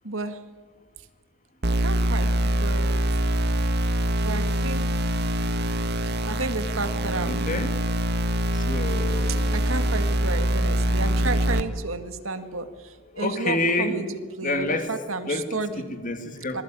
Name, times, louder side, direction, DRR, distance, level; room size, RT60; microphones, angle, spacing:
voice 1, 0.0-0.4 1.8-3.0 4.2-4.9 5.5-5.9 6.3-7.5 9.5-15.9 16.5-16.6, right 3 dB, 85° right, 9 dB, 1.9 m, -32 dB
sound 1, 1.6-11.6, equal, 55° right, 1.7 m, -24 dB
voice 2, 7.3-7.7 8.5-9.6 13.1-14.0 14.4-14.9 15.3-15.6 16.0-16.6, left 2 dB, 40° left, 7 dB, 2.7 m, -28 dB
26.5 x 20.5 x 9.0 m, 1.5 s
head